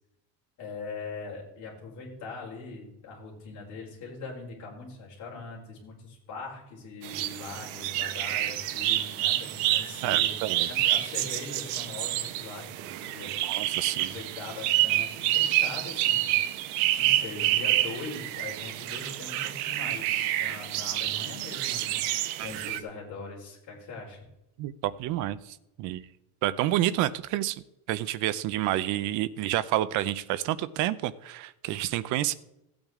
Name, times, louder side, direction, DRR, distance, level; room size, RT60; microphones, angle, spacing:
voice 1, 0.6-13.3 14.0-16.3 16.7-24.2, left 3 dB, 45° left, -3 dB, 4.5 m, -41 dB
sound 1, 7.0-22.8, right 14 dB, 80° right, 0.9 m, -28 dB
voice 2, 10.0-10.7 13.4-14.1 22.4-22.5 24.6-25.4 25.8-26.1 26.4-27.6 27.9-32.3, right 14 dB, 45° right, 15 dB, 0.5 m, -29 dB
15.0 x 8.7 x 3.6 m, 0.85 s
cardioid pair, 170°, 41 cm